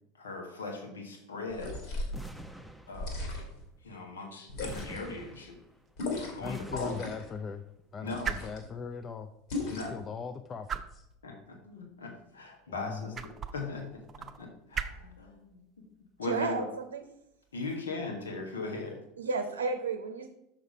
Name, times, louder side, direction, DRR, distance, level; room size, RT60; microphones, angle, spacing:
voice 1, 0.2-1.8 2.9-3.3 3.8-5.6 6.3-7.0 8.0-8.3 9.6-9.9 11.2-15.6 16.2-16.6 17.5-19.0, left 3 dB, 80° left, 2 dB, 1.4 m, -39 dB
sound 1, 1.5-2.2 2.9-3.6 4.5-5.1 6.0-6.4 6.7-7.3 8.1-8.7 9.5-10.0, left 2 dB, 60° left, 2.5 m, -37 dB
sound 2, 2.1-3.4 4.6-5.9 6.4-7.6, equal, 5° left, 0.8 m, -47 dB
sound 3, 5.2-18.8, right 7 dB, 30° right, 0.7 m, -44 dB
voice 2, 6.4-7.6 7.9-9.3 9.6-11.1 12.7-13.2, left 5 dB, 35° left, 9 dB, 0.5 m, -40 dB
voice 3, 16.2-17.0 19.2-20.3, right 4 dB, 80° right, 7 dB, 0.6 m, -32 dB
6.4 x 5.9 x 4.8 m, 0.83 s
figure-of-eight pair, 80°, 0 cm